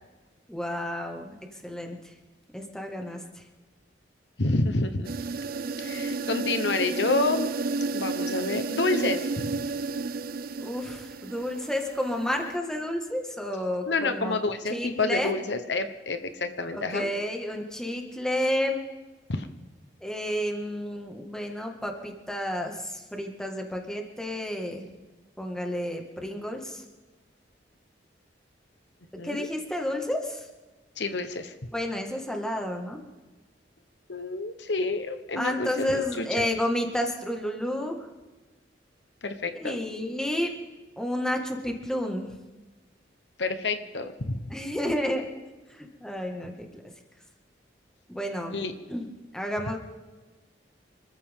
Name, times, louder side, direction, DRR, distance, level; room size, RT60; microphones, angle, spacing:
voice 1, 0.5-1.3 1.6-2.1 2.5-3.4 10.6-14.3 14.7-15.3 16.7-18.8 20.0-24.8 25.4-26.8 29.2-30.5 31.7-33.0 35.4-38.0 39.6-40.5 41.0-42.3 44.5-45.3 45.7-46.8 48.1-48.6 48.9-49.8, left 1 dB, 5° left, 2 dB, 2.0 m, -31 dB
voice 2, 4.4-5.1 5.8-7.5 7.9-9.5 13.9-17.1 19.3-19.5 29.2-29.5 31.0-31.5 34.1-36.5 39.2-39.8 43.4-44.5 48.5-48.7, left 3 dB, 70° left, 8 dB, 1.1 m, -28 dB
sound 1, 5.1-12.6, right 3 dB, 55° right, 0.6 m, -32 dB
26.0 x 14.5 x 3.8 m, 1.2 s
head